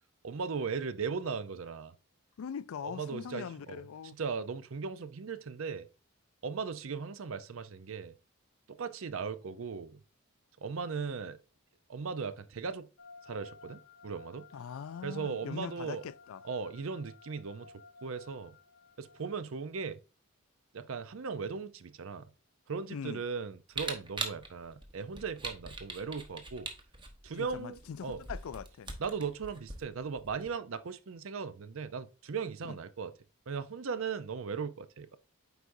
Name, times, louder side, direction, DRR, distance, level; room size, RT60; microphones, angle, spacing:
voice 1, 0.2-1.9 2.8-3.8 4.1-5.9 6.4-8.1 8.8-10.0 10.6-11.4 11.9-12.9 13.3-14.5 15.0-16.0 16.4-17.7 18.0-18.5 19.0-20.0 20.7-22.2 22.7-26.7 27.2-28.2 29.0-33.1 33.5-35.2, right 5 dB, 70° right, 0.6 m, -38 dB
voice 2, 2.4-4.2 14.5-16.4 22.9-23.2 27.3-28.9 32.7-32.8, left 7 dB, 75° left, 0.4 m, -42 dB
sound 1, 13.0-19.4, left 4 dB, 55° left, 0.8 m, -55 dB
Camera, 23.7-30.5, right 3 dB, 20° right, 0.9 m, -42 dB
8.0 x 4.8 x 2.6 m
head